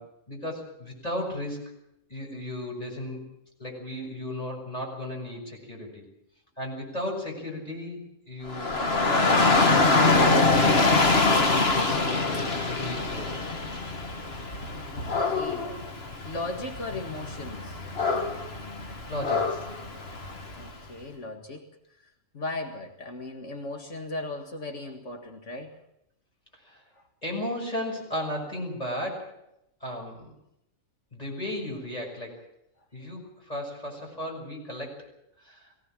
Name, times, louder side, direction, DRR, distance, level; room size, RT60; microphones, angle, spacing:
voice 1, 0.0-1.8 2.1-3.3 3.6-6.0 6.6-8.8 9.0-11.6 12.2-13.3 19.1-19.7 26.5-26.8 27.2-29.4 29.8-30.3 31.1-32.4 32.9-35.1 35.4-35.7, left 1 dB, 30° left, 0 dB, 6.2 m, -35 dB
Dog / Rain, 8.5-20.7, left 3 dB, 55° left, 2.1 m, -24 dB
voice 2, 14.9-15.8 16.2-17.8 20.5-21.7 22.3-25.8, left 2 dB, 75° left, 4 dB, 2.2 m, -37 dB
22.5 x 17.0 x 7.5 m, 0.81 s
omnidirectional pair, 1.3 m